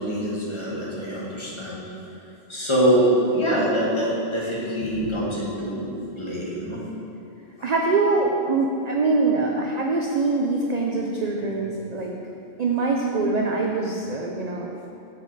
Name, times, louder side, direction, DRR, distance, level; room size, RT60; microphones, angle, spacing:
voice 1, 0.0-1.8 2.5-6.8 7.6-7.7, equal, 25° left, -6 dB, 1.4 m, -24 dB
voice 2, 7.6-12.1 12.6-14.9, right 3 dB, 60° right, 0 dB, 0.4 m, -23 dB
6.8 x 5.0 x 4.6 m, 2.7 s
omnidirectional pair, 1.3 m